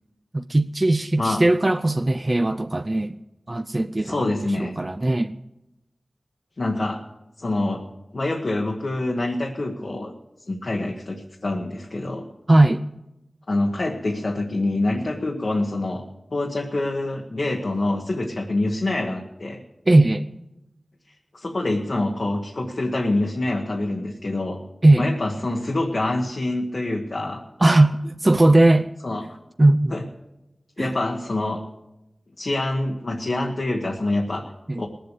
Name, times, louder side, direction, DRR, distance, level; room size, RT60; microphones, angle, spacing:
voice 1, 0.3-3.2 3.5-5.3 12.5-12.8 19.9-20.3 24.8-25.1 27.6-28.9 29.6-29.9 30.8-30.9 34.7-34.8, right 2 dB, 35° right, 0.5 m, -18 dB
voice 2, 4.0-4.7 6.6-7.0 7.4-7.8 8.1-10.1 10.5-12.2 13.5-16.0 16.3-19.6 21.3-24.6 25.0-27.4 29.0-29.4 29.9-30.0 30.8-31.6 32.4-34.5 34.8-34.9, left 2 dB, 70° left, 1.3 m, -26 dB
18.5 x 7.7 x 8.2 m
wide cardioid pair, 60°, 0 cm